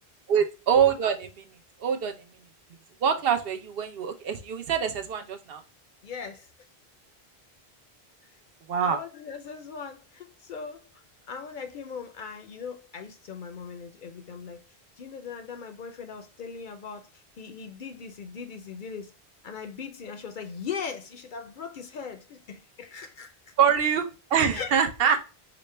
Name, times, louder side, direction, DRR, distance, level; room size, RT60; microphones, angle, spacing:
voice 1, 0.3-1.3 1.8-2.1 3.0-5.6 8.7-9.0 23.6-25.2, right 7 dB, 70° right, 0.8 m, -24 dB
voice 2, 6.0-6.5 8.8-10.9 11.3-14.6 15.0-19.1 19.4-23.5 24.5-24.7, left 6 dB, 60° left, 0.6 m, -39 dB
4.9 x 2.1 x 3.2 m
omnidirectional pair, 1.1 m